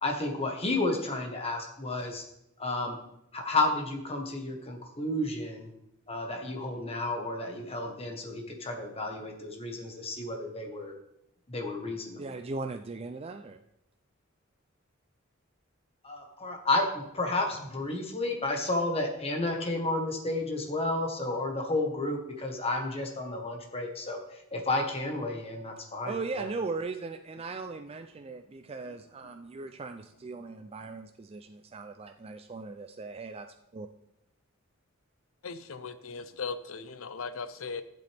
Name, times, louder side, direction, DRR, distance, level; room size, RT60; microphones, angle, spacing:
voice 1, 0.0-2.2 2.6-3.0 3.3-5.7 6.1-10.9 11.5-12.2 16.0-24.2 24.5-26.5, left 2 dB, 30° left, 2 dB, 1.4 m, -31 dB
voice 2, 12.2-13.6 26.1-33.9, right 3 dB, 30° right, 6 dB, 0.4 m, -38 dB
voice 3, 35.4-37.8, left 5 dB, 80° left, 12 dB, 0.7 m, -38 dB
12.0 x 7.7 x 3.5 m, 0.80 s
head